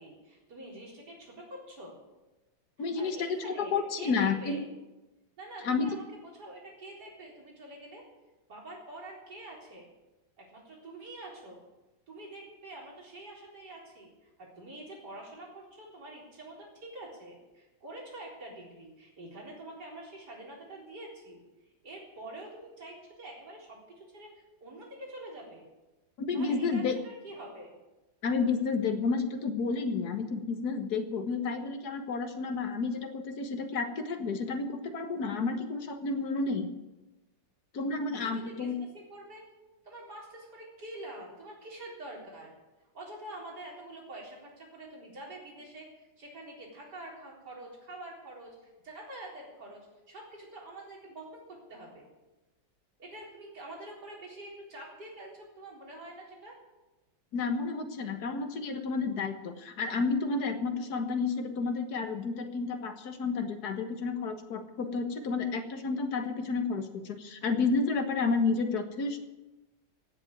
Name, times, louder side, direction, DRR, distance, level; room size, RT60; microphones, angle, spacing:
voice 1, 0.0-2.0 2.8-3.7 4.0-4.7 5.4-8.0 8.5-9.9 10.4-11.6 12.1-21.4 21.8-25.7 26.3-27.8 38.1-38.7 39.1-39.4 39.8-42.5 42.9-49.8 50.1-52.0 53.0-56.5, right 1 dB, 60° right, -2 dB, 4.6 m, -46 dB
voice 2, 2.8-4.6 5.6-5.9 26.2-27.0 28.2-36.7 37.7-38.8 57.3-69.2, left 4 dB, 60° left, 7 dB, 1.8 m, -31 dB
16.5 x 7.7 x 9.2 m, 1.1 s
omnidirectional pair, 2.0 m